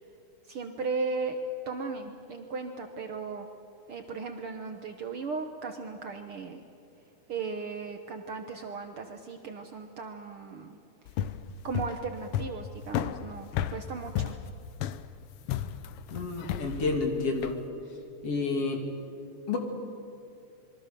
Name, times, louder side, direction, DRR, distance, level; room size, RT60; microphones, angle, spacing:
voice 1, 0.4-1.4 1.6-3.5 3.9-6.6 7.3-10.8 11.6-14.3, right 4 dB, 55° right, 6 dB, 1.7 m, -36 dB
sound 1, 11.1-17.6, left 10 dB, 85° left, 1.2 m, -33 dB
voice 2, 16.1-17.6 18.2-18.8 19.5-19.6, left 3 dB, 50° left, 3 dB, 3.5 m, -29 dB
27.0 x 23.0 x 6.8 m, 2.6 s
omnidirectional pair, 3.4 m